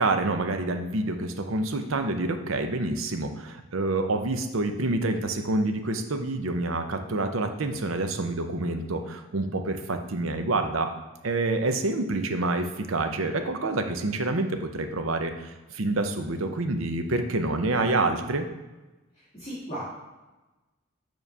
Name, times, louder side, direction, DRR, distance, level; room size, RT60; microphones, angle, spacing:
voice 1, 0.0-10.9 11.2-18.5, right 2 dB, 75° right, 6 dB, 0.7 m, -27 dB
voice 2, 19.1-19.8, right 1 dB, 30° left, -10 dB, 1.8 m, -37 dB
7.1 x 3.1 x 5.5 m, 1.1 s
head